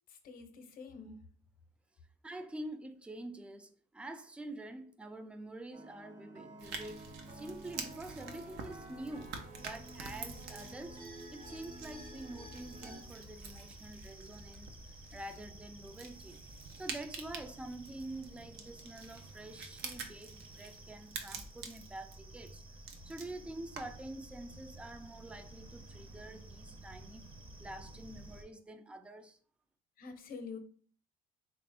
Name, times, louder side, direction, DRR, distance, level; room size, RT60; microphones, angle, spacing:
voice 1, 0.1-1.3 30.0-30.6, left 4 dB, 60° left, 0.7 m, -47 dB
voice 2, 2.2-16.4 16.7-22.6 22.9-27.2 27.6-29.4, right 1 dB, 5° right, 0.3 m, -47 dB
sound 1, 5.7-13.0, right 1 dB, 50° right, 1.0 m, -51 dB
sound 2, 6.6-24.1, right 5 dB, 80° right, 0.6 m, -48 dB
sound 3, 9.6-28.4, right 1 dB, 30° right, 0.7 m, -53 dB
3.5 x 2.5 x 3.3 m
cardioid pair, 110°, 17 cm